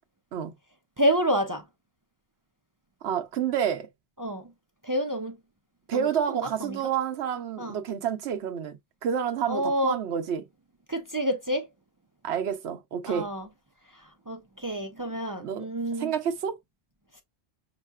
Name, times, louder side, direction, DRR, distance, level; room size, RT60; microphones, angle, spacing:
voice 1, 1.0-1.6 4.2-4.5 4.8-5.4 5.9-6.8 7.6-7.8 9.5-10.0 10.9-11.7 13.1-13.5 13.9-16.1, equal, 30° right, 0.4 m, -28 dB
voice 2, 3.0-3.9 5.9-10.5 12.2-13.3 15.4-15.6 16.0-16.6, right 8 dB, 75° right, 1.0 m, -29 dB
5.5 x 2.9 x 2.3 m
omnidirectional pair, 1.1 m